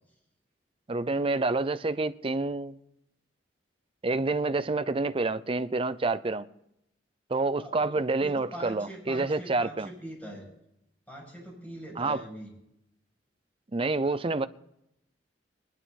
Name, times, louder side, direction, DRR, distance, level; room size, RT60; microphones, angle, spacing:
voice 1, 0.9-2.8 4.0-6.5 7.3-9.9 12.0-12.2 13.7-14.5, right 3 dB, 30° right, 0.6 m, -28 dB
voice 2, 7.5-7.9 8.2-10.5 11.1-12.5, right 1 dB, 10° left, 7.0 m, -42 dB
20.0 x 11.5 x 4.2 m
head